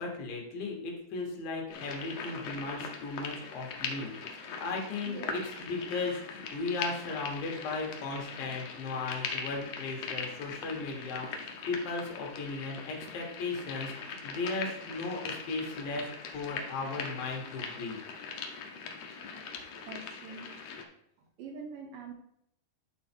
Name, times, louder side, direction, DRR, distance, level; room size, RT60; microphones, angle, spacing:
voice 1, 0.0-18.0, left 3 dB, 70° left, 0 dB, 3.1 m, -36 dB
sound 1, 1.7-20.8, left 5 dB, 90° left, 1.4 m, -41 dB
voice 2, 19.9-20.5 21.2-22.1, right 4 dB, 75° right, 4 dB, 2.4 m, -44 dB
10.0 x 4.3 x 4.4 m, 0.75 s
omnidirectional pair, 4.3 m